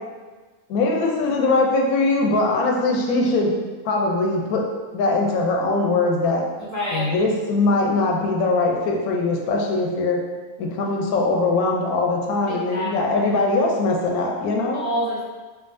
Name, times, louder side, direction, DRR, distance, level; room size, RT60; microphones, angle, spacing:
voice 1, 0.7-3.5 3.8-4.6 4.9-6.4 6.9-10.2 10.6-14.8, left 3 dB, 85° left, 0 dB, 1.1 m, -21 dB
voice 2, 6.6-7.1 12.5-12.9 14.7-15.2, equal, 30° left, -8 dB, 0.9 m, -27 dB
4.6 x 2.6 x 2.5 m, 1.3 s
omnidirectional pair, 1.5 m